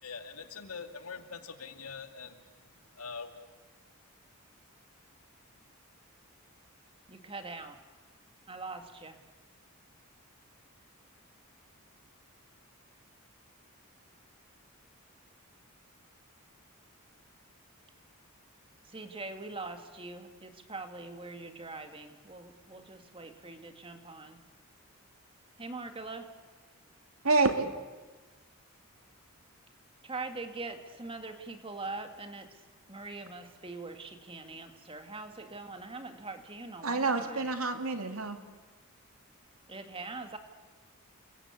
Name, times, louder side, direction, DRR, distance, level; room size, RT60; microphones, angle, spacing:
voice 1, 0.0-2.4 3.0-3.3, left 5 dB, 80° left, 7 dB, 2.4 m, -43 dB
voice 2, 7.1-7.8 8.5-9.2 18.8-24.4 25.6-26.3 30.0-32.6 32.9-37.4 39.7-40.4, right 3 dB, 25° right, 7 dB, 2.1 m, -42 dB
voice 3, 27.2-27.7 36.8-38.4, right 3 dB, 70° right, 6 dB, 2.6 m, -28 dB
29.0 x 23.5 x 8.4 m, 1.3 s
head